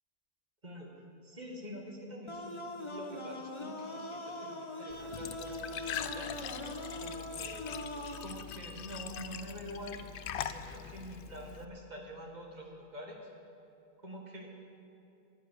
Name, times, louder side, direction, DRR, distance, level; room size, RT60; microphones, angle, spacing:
voice 1, 1.2-7.7 8.2-13.2 14.0-14.5, equal, 45° right, 0 dB, 2.0 m, -46 dB
sound 1, 2.3-8.3, left 1 dB, 30° left, 1.1 m, -42 dB
Glass / Trickle dribble / Fill (with liquid), 4.9-11.6, left 9 dB, 65° left, 0.7 m, -42 dB
11.0 x 10.5 x 8.4 m, 2.7 s
omnidirectional pair, 1.0 m